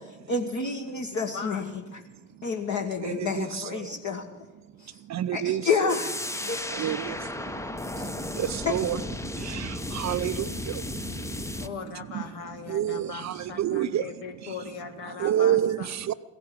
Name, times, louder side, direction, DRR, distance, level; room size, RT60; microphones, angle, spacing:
voice 1, 0.3-1.6 2.4-4.2 5.3-6.6 8.6-8.7, left 5 dB, 40° left, 2 dB, 1.5 m, -29 dB
voice 2, 1.1-1.7 11.6-15.9, left 6 dB, 80° left, 5 dB, 1.7 m, -39 dB
voice 3, 3.0-4.0 5.1-6.0 6.7-12.2 12.7-14.1 14.4-14.6 15.1-16.1, right 11 dB, 40° right, 13 dB, 0.6 m, -30 dB
sound 1, 5.9-11.7, left 2 dB, 5° left, 0.7 m, -34 dB
16.0 x 11.0 x 7.5 m, 1.2 s
hypercardioid pair, 60°, 42 cm